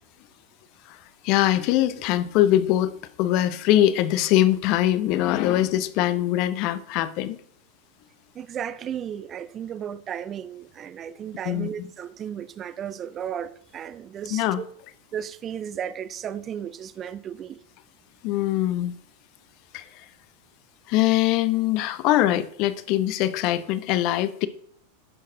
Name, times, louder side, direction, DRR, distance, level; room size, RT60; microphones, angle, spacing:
voice 1, 1.2-7.4 11.5-11.7 14.3-14.6 18.2-19.0 19.7-19.8 20.9-24.5, left 13 dB, 40° left, 0.5 m, -22 dB
voice 2, 8.3-14.6 15.1-17.6, right 9 dB, 25° right, 0.4 m, -34 dB
11.0 x 6.5 x 2.7 m
figure-of-eight pair, 90°, 0 cm